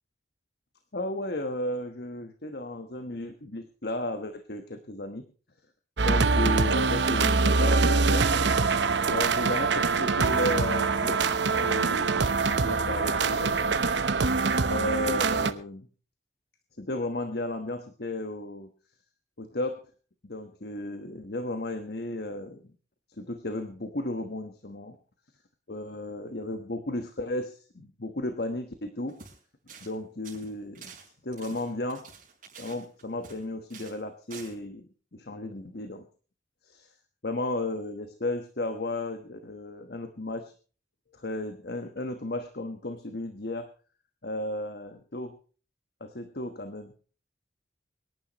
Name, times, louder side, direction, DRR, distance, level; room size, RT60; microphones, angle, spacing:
voice 1, 0.9-5.2 6.0-8.3 9.1-12.3 12.6-13.9 14.7-15.9 16.8-18.7 19.4-19.8 20.2-22.6 23.2-25.0 25.7-29.2 29.8-30.9 31.2-32.0 32.6-36.0 36.6-36.9 37.2-40.5 41.1-43.7 44.2-45.4 46.0-46.9, left 1 dB, 60° left, 7 dB, 1.2 m, -34 dB
sound 1, 6.0-15.5, right 4 dB, 80° right, 0.9 m, -24 dB
sound 2, 29.1-29.4 29.7-30.0 30.2-33.4 33.7-34.0 34.3-34.5, right 5 dB, 50° right, 5.2 m, -48 dB
24.5 x 11.0 x 3.0 m, 0.39 s
head